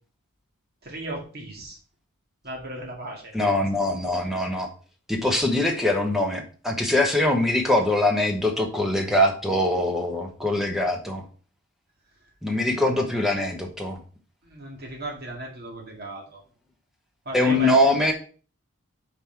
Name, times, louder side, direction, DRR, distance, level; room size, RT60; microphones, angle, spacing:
voice 1, 0.8-1.8 2.4-3.3 12.7-12.9 14.4-16.4 17.3-17.8, right 1 dB, 45° right, -1 dB, 2.2 m, -36 dB
voice 2, 3.3-4.7 5.1-11.2 12.4-14.0 17.3-18.1, left 1 dB, ahead, 2 dB, 1.1 m, -23 dB
5.5 x 5.0 x 5.9 m, 0.40 s
head